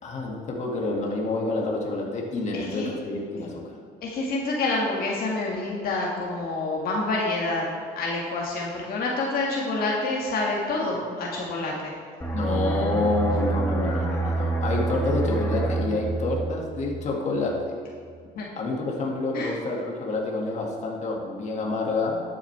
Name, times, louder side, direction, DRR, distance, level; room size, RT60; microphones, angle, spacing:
voice 1, 0.0-3.8 12.3-17.7 18.6-22.2, left 2 dB, 45° left, -2 dB, 2.1 m, -28 dB
voice 2, 2.5-2.9 4.0-7.7 8.0-11.9 18.3-18.5 19.3-19.5, left 2 dB, 65° left, -2 dB, 1.8 m, -27 dB
sound 1, 12.2-17.6 17.9-18.2, right 3 dB, 15° left, 1.6 m, -28 dB
12.0 x 8.8 x 3.4 m, 2.1 s
cardioid pair, 110°, 17 cm